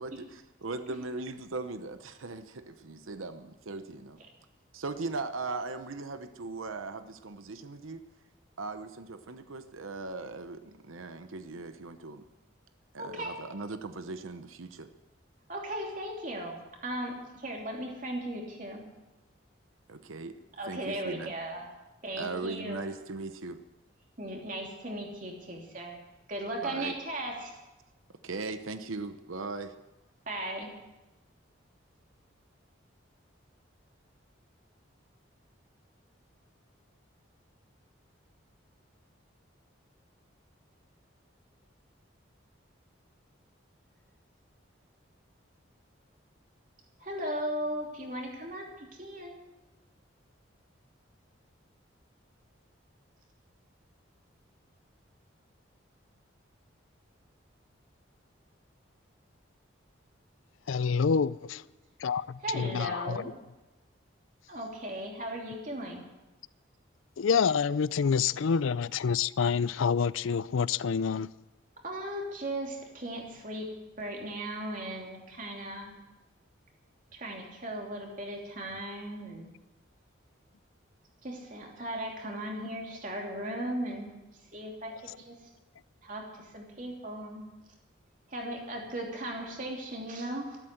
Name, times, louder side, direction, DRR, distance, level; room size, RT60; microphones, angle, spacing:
voice 1, 0.0-4.2 4.7-8.0 8.6-12.2 12.9-14.9 19.9-20.4 20.7-21.3 22.2-23.6 26.6-26.9 28.2-29.7, right 3 dB, 90° right, 0.9 m, -39 dB
voice 2, 13.0-13.4 15.5-16.6 16.8-18.8 20.6-21.7 22.0-22.8 24.2-26.0 26.3-27.7 30.3-30.7 47.0-49.4 61.4-61.5 62.4-63.3 64.5-66.0 71.8-73.7 74.0-75.9 77.1-79.5 81.2-84.2 84.5-85.3 86.0-87.4 88.3-90.6, right 1 dB, 40° right, 3.0 m, -37 dB
voice 3, 60.7-61.6 62.0-63.2 67.2-71.3, left 6 dB, 80° left, 0.4 m, -27 dB
13.5 x 12.5 x 7.9 m
head